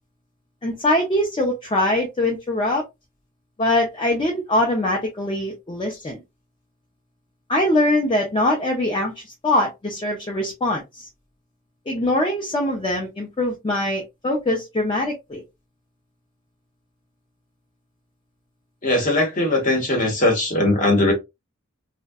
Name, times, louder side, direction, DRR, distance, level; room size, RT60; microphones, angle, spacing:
voice 1, 0.6-2.8 3.6-6.2 7.5-11.1 11.9-15.4, left 1 dB, 25° left, 0.4 m, -22 dB
voice 2, 18.8-21.1, left 1 dB, 40° left, 0.9 m, -19 dB
2.6 x 2.1 x 2.2 m
head